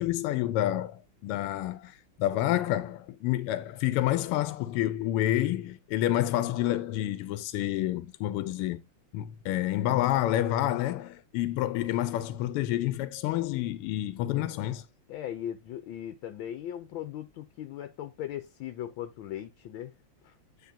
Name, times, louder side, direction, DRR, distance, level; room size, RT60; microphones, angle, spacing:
voice 1, 0.0-8.8 9.1-14.8, left 13 dB, 90° left, 1.5 m, -29 dB
voice 2, 15.1-19.9 20.2-20.3, left 11 dB, 75° left, 1.3 m, -38 dB
9.3 x 4.5 x 2.6 m
omnidirectional pair, 2.4 m